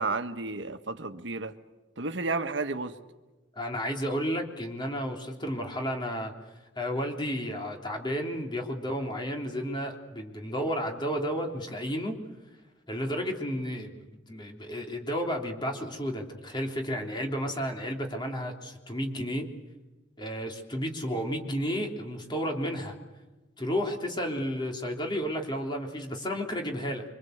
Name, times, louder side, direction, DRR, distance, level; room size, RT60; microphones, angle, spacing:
voice 1, 0.0-1.5 2.0-3.0, right 3 dB, 70° right, 1.6 m, -32 dB
voice 2, 3.5-6.3 6.7-12.2 12.9-19.5 20.2-23.0 23.6-27.0, equal, 25° left, 3.4 m, -32 dB
25.5 x 25.0 x 8.1 m
head